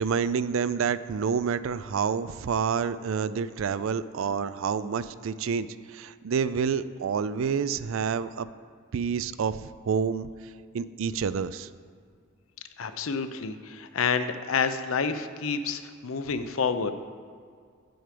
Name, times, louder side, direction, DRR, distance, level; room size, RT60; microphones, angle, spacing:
voice 1, 0.0-8.5 8.9-10.3 10.7-11.7, right 6 dB, 70° right, 15 dB, 0.4 m, -28 dB
voice 2, 12.8-16.9, left 5 dB, 75° left, 10 dB, 0.6 m, -29 dB
8.9 x 7.8 x 5.1 m, 2.1 s
head